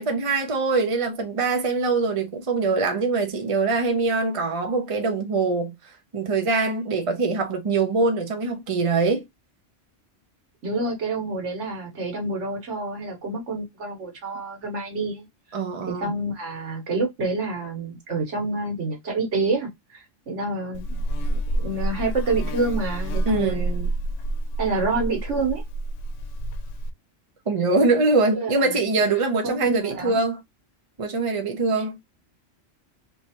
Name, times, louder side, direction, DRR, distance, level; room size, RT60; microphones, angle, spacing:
voice 1, 0.0-5.7 6.1-9.2 15.5-16.1 23.3-23.7 27.5-30.4 31.0-32.0, right 3 dB, 35° right, 0.7 m, -23 dB
voice 2, 10.6-15.3 15.9-20.8 21.3-23.9 24.6-25.6 28.3-29.0 29.4-30.2, right 3 dB, 85° right, 1.5 m, -28 dB
Buzz, 20.7-26.9, right 1 dB, 90° left, 0.9 m, -28 dB
3.2 x 3.1 x 2.8 m
omnidirectional pair, 1.2 m